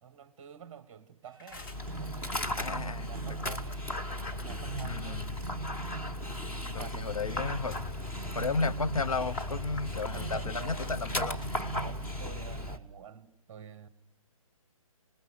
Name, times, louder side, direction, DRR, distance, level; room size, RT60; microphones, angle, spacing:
voice 1, 0.0-2.6 3.0-3.9 4.3-5.3 6.6-7.2 8.6-8.7 10.1-11.0 11.7-13.9, right 8 dB, 20° right, 1.6 m, -49 dB
Psychedelic Robotics, 1.2-4.1 4.5-6.9 7.3-12.6, right 6 dB, 40° right, 1.1 m, -43 dB
sound 1, 1.3-2.0 2.7-3.1 4.3-5.0 6.2-6.7 7.3-7.4 7.7-8.0 8.3-9.0 9.3-11.0 11.3-11.6, left 3 dB, 35° left, 2.7 m, -52 dB
Dog, 1.5-12.8, left 1 dB, 10° left, 1.3 m, -36 dB
voice 2, 2.6-3.1 3.4-3.6 4.8-5.4 6.7-7.8 8.3-11.4, left 3 dB, 70° left, 0.9 m, -33 dB
27.5 x 20.5 x 7.9 m
figure-of-eight pair, 140°, 19 cm